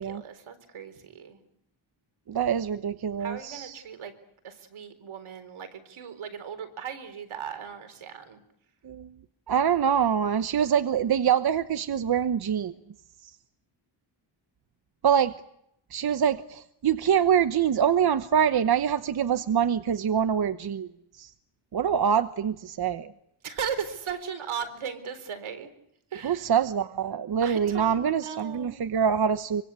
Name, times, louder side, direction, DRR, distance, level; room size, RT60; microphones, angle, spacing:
voice 1, 0.0-1.4 3.2-4.1 4.4-8.4 23.4-25.7 26.1-26.5 27.4-28.8, right 7 dB, 80° right, 10 dB, 4.2 m, -37 dB
voice 2, 2.3-3.8 8.8-9.1 9.5-12.7 15.0-15.4 15.9-20.9 21.2-21.3 21.7-23.1 26.2-29.6, right 8 dB, 50° right, 11 dB, 1.0 m, -25 dB
25.0 x 24.5 x 8.3 m, 0.76 s
wide cardioid pair, 135°, 48 cm